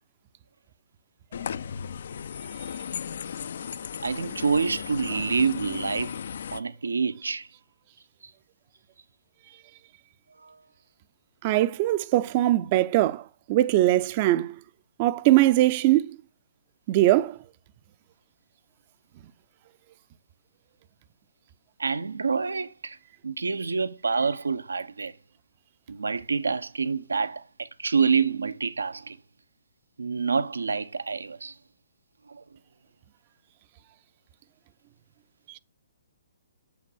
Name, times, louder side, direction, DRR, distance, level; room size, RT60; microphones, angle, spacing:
sound 1, 1.3-6.6, left 7 dB, 60° left, 0.6 m, -36 dB
voice 1, 4.0-6.2 6.5-7.5 10.4-10.5 21.8-23.0 23.2-25.1 25.9-29.2 30.0-31.5 32.3-32.4, right 5 dB, 75° right, 1.0 m, -27 dB
voice 2, 11.4-14.6 15.0-16.2 16.9-17.4 35.5-35.6, right 15 dB, 35° right, 0.7 m, -21 dB
8.6 x 7.5 x 6.4 m
figure-of-eight pair, 130°, 0 cm